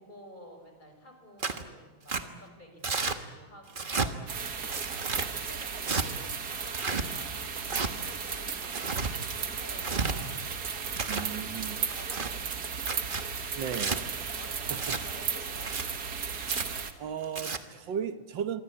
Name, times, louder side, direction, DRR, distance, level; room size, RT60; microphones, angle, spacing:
voice 1, 0.0-4.3 5.0-8.6 8.9-10.6 11.9-12.5 14.4-15.7, equal, 25° left, 4 dB, 6.0 m, -51 dB
Tearing, 1.4-1.6 2.1-2.2 2.8-3.2 3.7-4.1 4.7-5.3 5.8-6.1 6.7-7.0 7.6-7.9 8.6-9.1 9.7-10.1 10.7-11.3 11.8-12.3 12.8-13.2 13.7-14.0 14.7-15.0 15.6-15.8 16.4-16.6 17.2-17.6, right 4 dB, 30° right, 1.4 m, -32 dB
sound 1, 4.3-16.9, right 6 dB, 55° right, 2.1 m, -35 dB
voice 2, 11.1-11.8 13.5-14.4 14.7-15.0 17.0-18.6, right 8 dB, 75° right, 11 dB, 1.9 m, -36 dB
25.5 x 25.0 x 8.6 m, 1.3 s
omnidirectional pair, 2.1 m